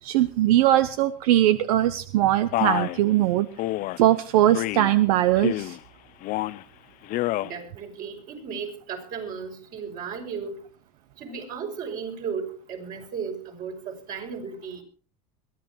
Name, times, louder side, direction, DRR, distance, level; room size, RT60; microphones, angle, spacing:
voice 1, 0.0-3.5 4.0-5.8, right 13 dB, 90° right, 13 dB, 0.7 m, -21 dB
Male speech man speaking, 2.5-3.0 3.6-4.0 4.5-4.9 5.4-5.8 6.2-6.6 7.0-7.5, left 17 dB, 50° left, 0.6 m, -28 dB
voice 2, 7.4-10.6 11.2-14.8, right 6 dB, 50° right, 2 dB, 6.1 m, -35 dB
22.0 x 15.0 x 3.1 m, 0.40 s
supercardioid pair, 125°, 18 cm